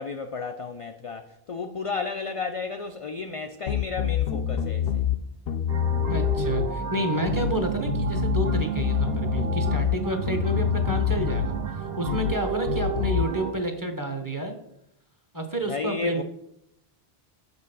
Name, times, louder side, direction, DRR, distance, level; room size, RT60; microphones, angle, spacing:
voice 1, 0.0-5.0 15.7-16.2, left 4 dB, 55° left, 0.3 m, -33 dB
sound 1, 3.7-5.2 5.5-6.7 7.3-7.6 7.9-10.0 10.3-11.5 12.1-12.4 12.7-13.3, left 10 dB, 70° left, 0.8 m, -26 dB
sound 2, 5.7-13.5, right 7 dB, 70° right, 1.0 m, -31 dB
voice 2, 6.1-14.5 15.3-16.2, right 1 dB, 20° right, 0.8 m, -30 dB
6.4 x 5.4 x 5.4 m
omnidirectional pair, 1.1 m